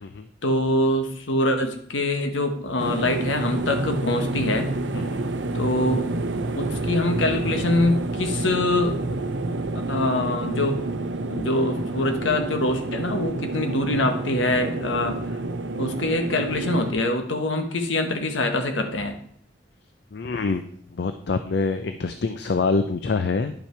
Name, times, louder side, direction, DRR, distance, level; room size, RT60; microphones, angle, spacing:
voice 1, 0.4-4.7 5.5-6.1 6.5-9.0 9.9-10.8 11.3-15.4 15.8-19.2, left 1 dB, 85° left, 6 dB, 1.2 m, -24 dB
sound 1, 2.8-16.9, right 2 dB, 70° right, 0.6 m, -28 dB
voice 2, 20.1-20.6 20.9-23.5, left 4 dB, 60° left, 9 dB, 0.4 m, -25 dB
10.5 x 5.7 x 4.5 m, 0.62 s
head